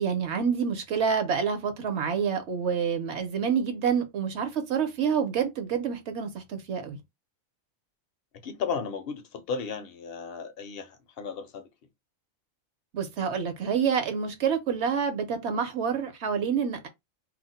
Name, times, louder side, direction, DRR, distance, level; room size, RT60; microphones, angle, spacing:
voice 1, 0.0-7.0 12.9-16.9, right 7 dB, 60° right, 0.9 m, -27 dB
voice 2, 8.4-11.7, left 5 dB, 65° left, 0.6 m, -34 dB
2.4 x 2.1 x 3.9 m
omnidirectional pair, 1.4 m